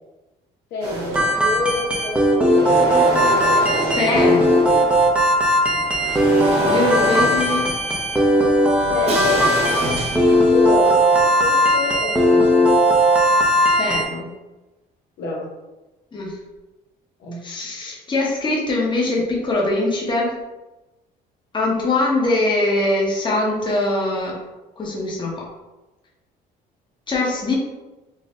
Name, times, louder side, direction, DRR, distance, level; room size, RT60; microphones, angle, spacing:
voice 1, 0.7-3.3 8.9-9.5 10.5-11.0 11.4-12.7 15.2-15.5 17.2-17.4, left 2 dB, 75° left, -3 dB, 1.2 m, -27 dB
sound 1, 0.8-1.8 2.2-5.2 5.6-11.2, right 1 dB, 85° right, 1.4 m, -27 dB
sound 2, 1.1-14.0, equal, 5° right, 0.8 m, -18 dB
voice 2, 3.8-4.4 6.6-7.7 13.8-14.3 16.1-16.4 17.4-20.3 21.5-24.4 24.8-25.3 27.1-27.5, left 2 dB, 25° left, -3 dB, 1.1 m, -22 dB
Crash cymbal, 9.1-11.1, right 2 dB, 35° right, 0.8 m, -32 dB
4.2 x 2.5 x 3.8 m, 1.1 s
cardioid pair, 110°, 17 cm